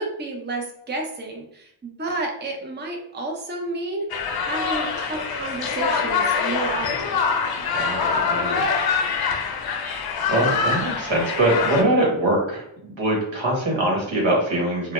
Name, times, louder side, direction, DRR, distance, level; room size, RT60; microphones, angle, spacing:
voice 1, 0.0-7.2, right 2 dB, 25° right, 0 dB, 0.6 m, -31 dB
sound 1, 4.1-11.8, left 5 dB, 55° left, 0.5 m, -24 dB
voice 2, 7.7-8.6 10.3-14.9, right 1 dB, 80° right, -2 dB, 1.1 m, -23 dB
2.2 x 2.0 x 2.9 m, 0.74 s
cardioid pair, 60°, 45 cm